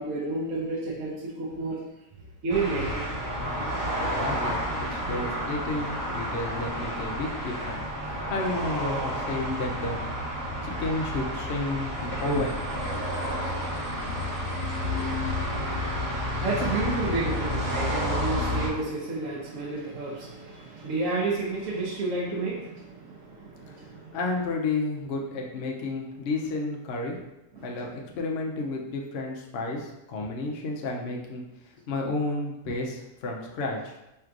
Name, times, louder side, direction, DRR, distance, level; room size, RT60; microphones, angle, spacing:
voice 1, 0.0-1.8 2.4-3.1 16.1-24.2 27.6-27.9, right 3 dB, 60° right, -6 dB, 1.0 m, -31 dB
sound 1, 2.5-18.7, equal, 35° right, 1.3 m, -30 dB
voice 2, 4.0-10.0 10.6-12.6 23.6-27.2 27.6-34.0, left 2 dB, 75° left, 0 dB, 0.5 m, -32 dB
3.3 x 2.5 x 4.5 m, 0.92 s
omnidirectional pair, 1.8 m